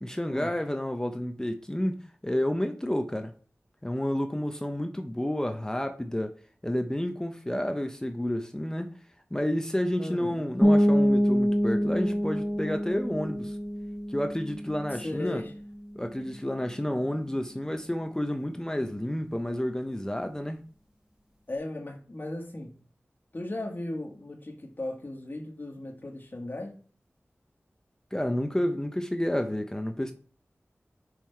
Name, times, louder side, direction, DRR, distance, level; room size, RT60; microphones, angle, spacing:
voice 1, 0.0-2.0 2.2-3.3 3.8-6.3 6.6-8.9 9.3-13.6 14.1-15.4 15.9-20.6 28.1-30.1, left 1 dB, 15° left, 0.6 m, -30 dB
voice 2, 10.0-10.5 14.9-15.5 16.2-16.4 21.5-22.8 23.3-26.8, left 2 dB, 40° left, 1.3 m, -37 dB
sound 1, 10.6-16.2, equal, 15° right, 3.3 m, -26 dB
5.5 x 4.6 x 4.5 m
wide cardioid pair, 60°, 5 cm